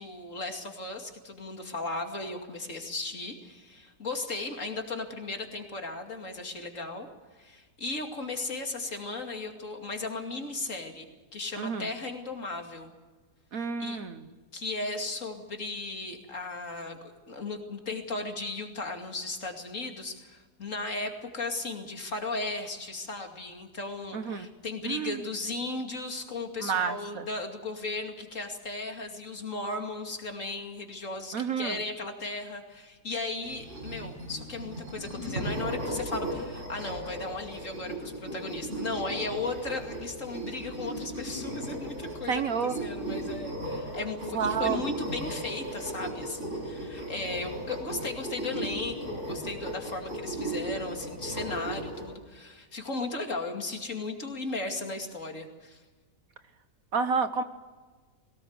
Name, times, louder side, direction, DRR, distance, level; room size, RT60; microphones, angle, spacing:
voice 1, 0.0-7.1 7.4-11.0 11.3-12.9 13.5-14.0 14.5-55.8, left 3 dB, 45° left, 3 dB, 2.8 m, -36 dB
voice 2, 11.6-11.9 13.5-14.2 24.1-24.5 24.9-25.2 26.6-27.2 31.3-31.8 42.3-42.8 44.3-44.8 56.9-57.4, right 6 dB, 55° right, 10 dB, 1.4 m, -29 dB
sound 1, 33.4-52.1, right 1 dB, 40° right, 6.6 m, -36 dB
21.5 x 19.0 x 8.0 m, 1.3 s
omnidirectional pair, 1.9 m